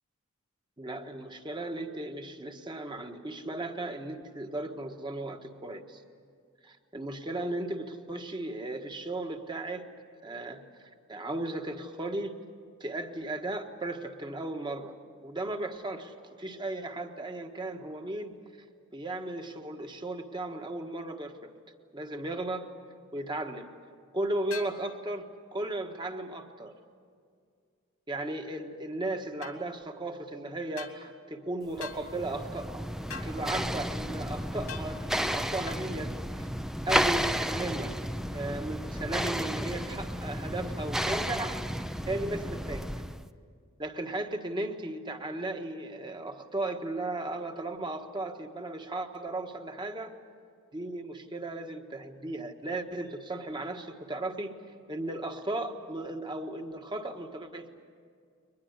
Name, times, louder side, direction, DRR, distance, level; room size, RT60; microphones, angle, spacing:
voice 1, 0.8-6.0 6.6-9.9 10.2-10.6 11.1-12.3 12.8-14.9 15.2-18.3 18.9-21.5 21.9-22.7 23.1-23.7 24.1-25.2 25.5-26.7 28.1-32.9 33.2-36.5 36.8-37.9 38.3-41.6 42.1-42.9 43.8-50.1 50.7-54.5 54.9-57.8, right 2 dB, 20° right, 5 dB, 1.5 m, -36 dB
sound 1, 24.5-24.8 29.4-29.6 30.8-31.0 31.8-32.0 33.1-33.3 34.7-34.9 35.7-35.8, left 6 dB, 85° left, 2.5 m, -41 dB
sound 2, 31.8-43.3, equal, ahead, 0.5 m, -32 dB
23.0 x 21.0 x 9.6 m, 2.1 s
head